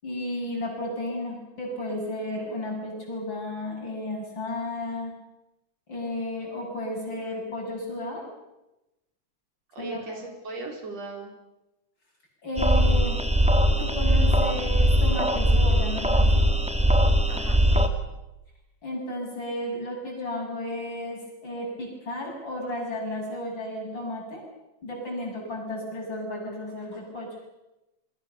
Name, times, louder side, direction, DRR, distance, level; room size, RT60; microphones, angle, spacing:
voice 1, 0.0-5.1 5.9-8.3 9.8-10.2 12.4-13.2 13.8-16.5 18.8-24.4 24.8-27.3, left 1 dB, 40° left, 0 dB, 8.0 m, -33 dB
voice 2, 9.7-11.3 17.3-17.9, right 3 dB, 60° right, 2 dB, 5.1 m, -38 dB
sound 1, 12.6-17.9, equal, 5° right, 1.0 m, -21 dB
27.5 x 22.5 x 7.0 m, 0.98 s
omnidirectional pair, 3.3 m